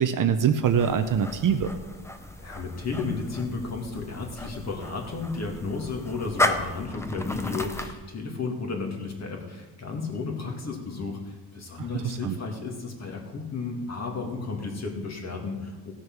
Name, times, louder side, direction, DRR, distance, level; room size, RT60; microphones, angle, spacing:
voice 1, 0.0-1.7 11.9-12.4, right 8 dB, 45° right, 8 dB, 0.7 m, -24 dB
sound 1, 0.6-8.0, left 2 dB, 5° left, 0.6 m, -33 dB
voice 2, 2.4-15.9, left 4 dB, 35° left, 2 dB, 2.1 m, -33 dB
16.0 x 6.4 x 6.1 m, 1.2 s
cardioid pair, 140°, 46 cm